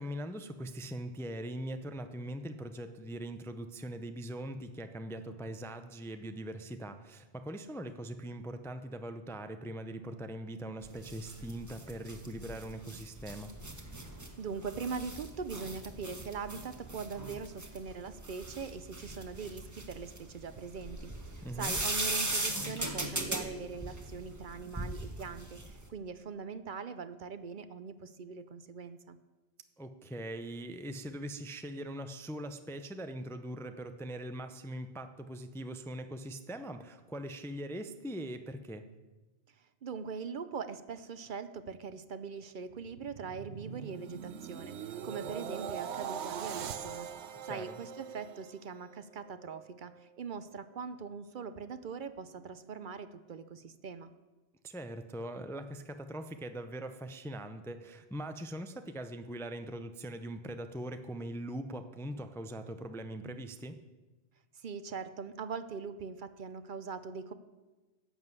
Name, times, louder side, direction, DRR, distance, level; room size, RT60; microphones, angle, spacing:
voice 1, 0.0-13.5 21.4-21.7 29.8-38.8 47.5-47.8 54.6-63.8, right 1 dB, 5° left, 8 dB, 0.4 m, -41 dB
sound 1, 10.8-25.8, right 1 dB, 15° right, 1.2 m, -39 dB
voice 2, 14.4-21.1 21.4-29.2 39.8-47.1 47.4-54.1 64.6-67.3, right 5 dB, 55° right, 12 dB, 0.7 m, -41 dB
sound 2, 42.7-49.0 49.4-49.7, right 8 dB, 85° right, 1.0 m, -42 dB
11.0 x 7.3 x 8.1 m, 1.2 s
omnidirectional pair, 1.1 m